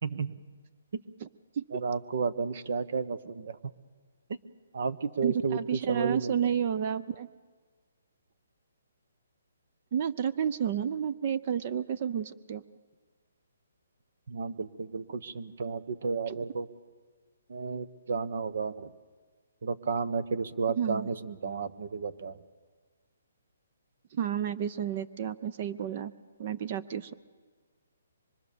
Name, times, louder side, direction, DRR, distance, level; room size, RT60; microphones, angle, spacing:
voice 1, 0.0-0.4 0.9-1.0 1.7-3.6 4.7-6.6 14.3-16.7 17.5-18.9 19.6-22.4, right 5 dB, 60° right, 14 dB, 1.2 m, -32 dB
voice 2, 5.2-7.3 9.9-12.6 16.3-16.4 20.8-21.1 24.1-26.1 26.4-27.1, right 8 dB, 35° right, 14 dB, 0.6 m, -31 dB
24.5 x 23.0 x 6.9 m, 1.5 s
hypercardioid pair, 160°, 0 cm